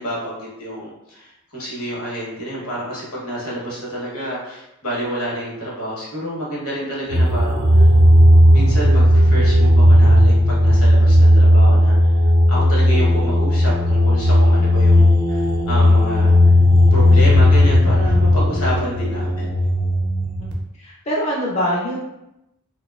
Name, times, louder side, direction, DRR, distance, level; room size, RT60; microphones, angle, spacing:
voice 1, 0.0-7.9 8.5-12.1 12.5-16.5 16.9-19.5, right 1 dB, 75° left, -5 dB, 0.9 m, -28 dB
sound 1, 7.1-20.5, left 1 dB, 50° right, 0.4 m, -14 dB
voice 2, 20.8-22.0, equal, 30° left, -5 dB, 0.4 m, -23 dB
2.6 x 2.1 x 2.2 m, 0.89 s
head